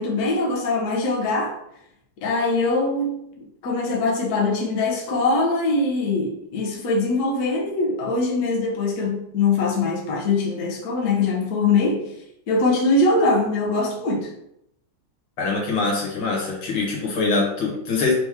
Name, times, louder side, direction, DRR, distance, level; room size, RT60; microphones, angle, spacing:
voice 1, 0.0-1.6 2.2-3.3 3.6-12.1 12.5-14.3, left 3 dB, 60° left, 1.1 m, -22 dB
voice 2, 15.4-18.1, left 3 dB, 80° left, 2.1 m, -23 dB
4.2 x 3.0 x 3.5 m
omnidirectional pair, 2.3 m